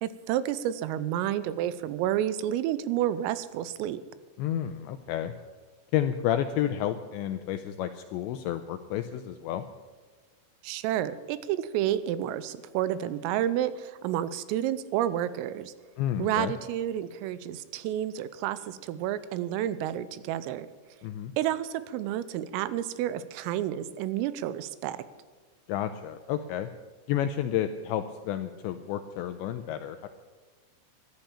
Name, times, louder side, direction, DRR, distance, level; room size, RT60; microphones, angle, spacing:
voice 1, 0.0-4.0 10.6-15.7 16.2-20.7 21.4-25.0, right 11 dB, 90° right, 15 dB, 3.4 m, -30 dB
voice 2, 4.4-5.3 5.9-9.6 16.0-16.5 21.0-21.3 25.7-26.7 27.1-30.1, left 11 dB, 85° left, 8 dB, 2.6 m, -30 dB
14.5 x 11.5 x 7.1 m, 1.4 s
omnidirectional pair, 5.9 m